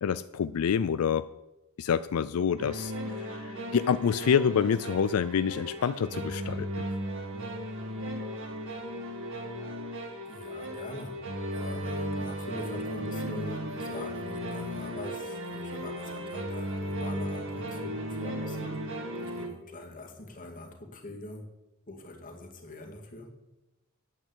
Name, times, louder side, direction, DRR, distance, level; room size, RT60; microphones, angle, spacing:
voice 1, 0.0-1.2 1.8-6.9, left 7 dB, 90° left, 14 dB, 0.4 m, -27 dB
sound 1, 2.6-19.5, equal, 65° right, 2.2 m, -36 dB
voice 2, 10.3-11.2 11.5-18.9 19.1-21.5 21.9-23.4, left 2 dB, 40° left, 2 dB, 2.2 m, -43 dB
8.8 x 8.8 x 8.2 m, 0.98 s
head